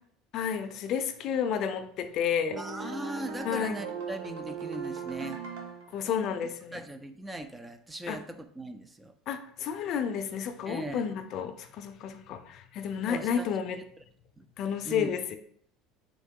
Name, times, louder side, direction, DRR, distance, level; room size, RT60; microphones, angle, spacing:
voice 1, 0.3-2.6 3.4-3.7 5.9-6.8 8.1-8.2 9.3-13.8 14.6-15.4, left 7 dB, 55° left, 8 dB, 0.4 m, -31 dB
sound 1, 2.5-6.0, right 5 dB, 90° right, 0.8 m, -38 dB
voice 2, 2.6-5.4 6.0-6.2 6.7-9.1 10.7-11.0 13.1-13.5 14.0-14.1 14.4-14.5 14.9-15.1, right 2 dB, 10° right, 9 dB, 0.3 m, -39 dB
3.7 x 3.0 x 3.6 m, 0.63 s
supercardioid pair, 120°, 0 cm